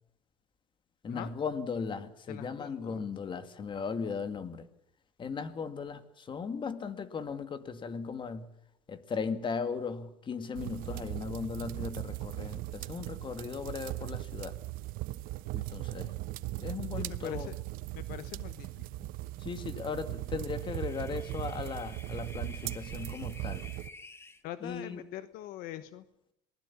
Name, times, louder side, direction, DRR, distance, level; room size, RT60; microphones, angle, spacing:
voice 1, 1.0-4.7 5.2-8.5 8.9-14.6 15.5-16.1 16.6-17.5 19.4-23.6 24.6-25.0, left 5 dB, 30° left, 10 dB, 2.2 m, -37 dB
voice 2, 2.3-3.1 17.0-17.6 17.9-19.1 24.4-26.0, left 13 dB, 70° left, 12 dB, 1.2 m, -43 dB
sound 1, 10.5-23.9, right 18 dB, 65° right, 1.0 m, -38 dB
sound 2, 20.1-24.4, left 3 dB, 15° left, 1.7 m, -51 dB
26.5 x 19.5 x 7.3 m, 0.79 s
supercardioid pair, 115°, 16 cm